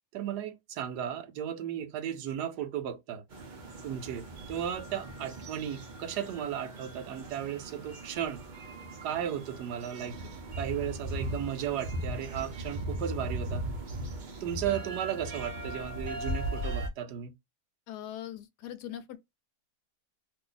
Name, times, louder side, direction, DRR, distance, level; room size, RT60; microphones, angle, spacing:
voice 1, 0.1-3.2 3.8-8.4 9.0-10.2 10.6-13.6 14.4-17.3, right 10 dB, 85° right, 1.2 m, -35 dB
sound 1, 3.3-16.9, right 1 dB, 65° right, 0.4 m, -38 dB
voice 2, 17.9-19.2, left 11 dB, 85° left, 1.2 m, -41 dB
2.6 x 2.6 x 3.8 m
omnidirectional pair, 1.7 m